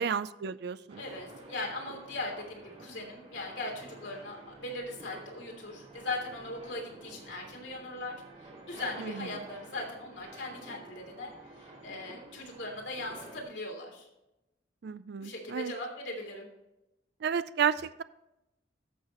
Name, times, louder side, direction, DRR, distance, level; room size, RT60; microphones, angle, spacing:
voice 1, 0.0-1.0 9.0-9.3 14.8-15.7 17.2-18.0, right 7 dB, 65° right, 15 dB, 0.4 m, -32 dB
voice 2, 0.9-8.1 8.4-14.1 15.2-16.5, left 2 dB, 75° left, 1 dB, 3.1 m, -39 dB
sound 1, 0.9-13.4, right 2 dB, 35° right, 2.3 m, -50 dB
14.0 x 6.5 x 3.1 m, 0.91 s
head